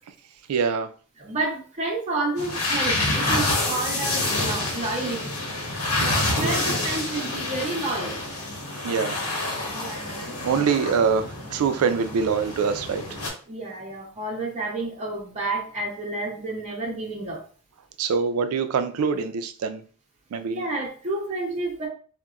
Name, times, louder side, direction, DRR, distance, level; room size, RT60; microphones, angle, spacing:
voice 1, 0.5-0.9 6.0-6.5 8.8-9.2 10.4-13.0 18.0-19.8 20.3-20.6, right 5 dB, 90° right, 0.4 m, -24 dB
voice 2, 1.2-5.3 6.4-8.2 9.7-10.4 13.5-17.5 20.5-21.9, right 2 dB, 30° right, 0.6 m, -30 dB
sound 1, 2.4-13.3, left 2 dB, 80° left, 0.9 m, -28 dB
3.9 x 2.1 x 2.3 m
head